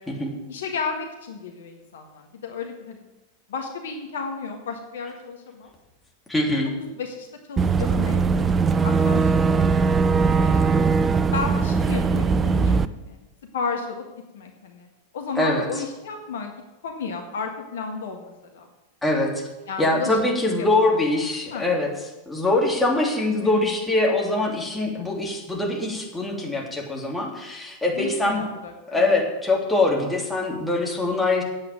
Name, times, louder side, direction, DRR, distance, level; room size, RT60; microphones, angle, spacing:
voice 1, 0.0-3.0 3.5-5.7 6.8-9.7 10.4-11.0 11.3-13.2 13.5-14.0 14.3-14.9 15.1-16.5 16.8-18.7 19.7-20.2 20.6-20.8 21.1-21.2 21.5-21.7 23.4-23.6 27.9-29.1, left 5 dB, 60° left, 4 dB, 1.6 m, -33 dB
voice 2, 6.3-6.7 15.4-15.7 19.0-19.4 19.8-21.9 22.3-28.4 28.9-31.4, left 2 dB, 5° left, -2 dB, 3.1 m, -23 dB
Boat Water vehicle / Engine, 7.6-12.9, right 5 dB, 20° right, 0.5 m, -20 dB
8.8 x 8.3 x 9.0 m, 1.0 s
figure-of-eight pair, 90°, 0 cm